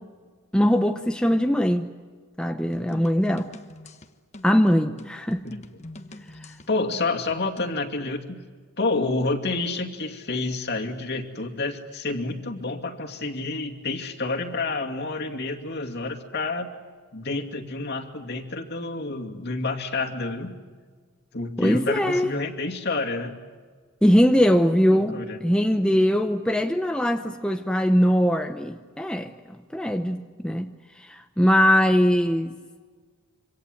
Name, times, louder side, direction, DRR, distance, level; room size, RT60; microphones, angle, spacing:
voice 1, 0.5-1.9 2.4-3.5 4.4-5.4 21.6-22.3 24.0-29.3 29.7-32.6, equal, 5° left, 5 dB, 0.7 m, -21 dB
sound 1, 2.7-7.8, left 1 dB, 30° left, 1.3 m, -43 dB
voice 2, 6.7-8.4 8.8-16.7 17.1-20.5 21.3-23.3 24.8-25.4, left 3 dB, 50° left, 2 dB, 2.5 m, -29 dB
26.5 x 25.5 x 7.9 m, 1.5 s
head